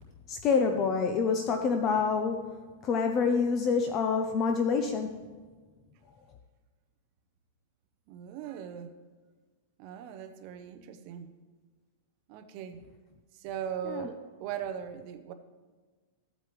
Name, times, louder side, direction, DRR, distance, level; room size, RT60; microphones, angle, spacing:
voice 1, 0.3-5.2 13.8-14.1, left 5 dB, 25° left, 5 dB, 0.5 m, -27 dB
voice 2, 8.1-8.9 9.8-11.3 12.3-12.8 13.3-15.3, right 9 dB, 35° right, 9 dB, 0.6 m, -39 dB
14.5 x 8.0 x 3.1 m, 1.4 s
supercardioid pair, 175°, 0 cm